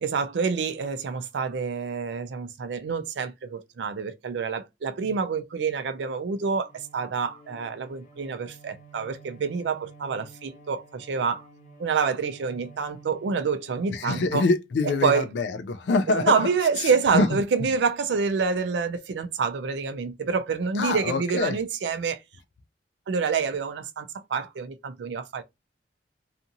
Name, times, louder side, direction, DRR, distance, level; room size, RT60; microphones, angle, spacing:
voice 1, 0.0-11.5 11.8-14.5 14.8-15.4 16.1-22.2 23.1-25.4, right 5 dB, 75° right, 0.4 m, -27 dB
Bowed string instrument, 6.3-14.7, right 3 dB, 45° left, 0.9 m, -51 dB
voice 2, 13.9-16.5 16.8-17.4 20.8-21.6, left 3 dB, 70° left, 0.3 m, -25 dB
2.7 x 2.5 x 2.5 m
head